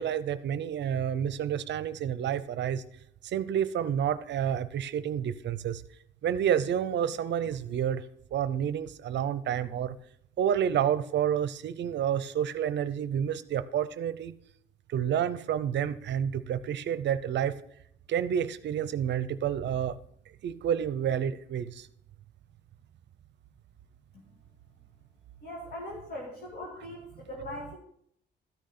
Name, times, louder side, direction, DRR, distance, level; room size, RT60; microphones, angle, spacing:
voice 1, 0.0-2.8 3.2-5.8 6.2-8.0 8.3-9.9 10.4-14.3 14.9-17.5 18.1-20.0 20.4-21.9, right 9 dB, 65° right, 14 dB, 0.6 m, -29 dB
voice 2, 25.4-27.8, left 1 dB, 55° left, -3 dB, 2.2 m, -40 dB
13.0 x 6.4 x 4.2 m, 0.69 s
cardioid pair, 90°, 20 cm